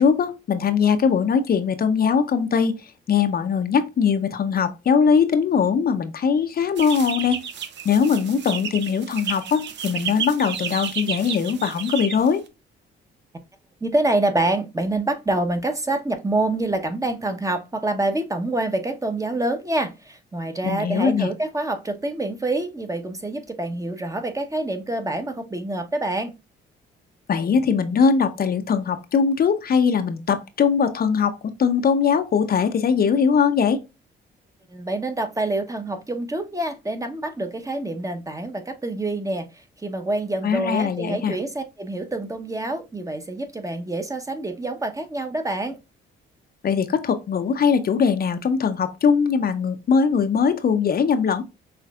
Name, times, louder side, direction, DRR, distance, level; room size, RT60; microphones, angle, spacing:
voice 1, 0.0-2.7 3.1-7.4 7.8-12.4 20.6-21.3 27.3-33.8 40.4-41.3 46.6-51.4, left 6 dB, 50° left, 0.8 m, -21 dB
sound 1, 6.8-12.5, right 8 dB, 65° right, 0.8 m, -32 dB
voice 2, 13.8-26.3 34.7-45.8, right 2 dB, 15° right, 1.0 m, -26 dB
5.8 x 3.2 x 2.4 m
cardioid pair, 90°, 20 cm